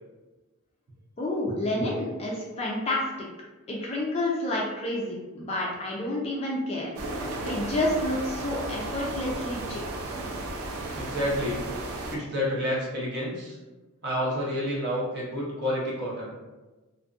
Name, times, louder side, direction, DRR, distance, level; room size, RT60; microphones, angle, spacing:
voice 1, 1.2-3.0 3.7-6.9 7.4-10.1, left 1 dB, 25° left, -3 dB, 0.3 m, -29 dB
sound 1, 7.0-12.2, right 2 dB, 75° right, 0.4 m, -34 dB
voice 2, 10.9-11.6 12.1-13.6 14.0-16.3, equal, 50° right, -5 dB, 0.7 m, -29 dB
2.5 x 2.5 x 2.3 m, 1.2 s
head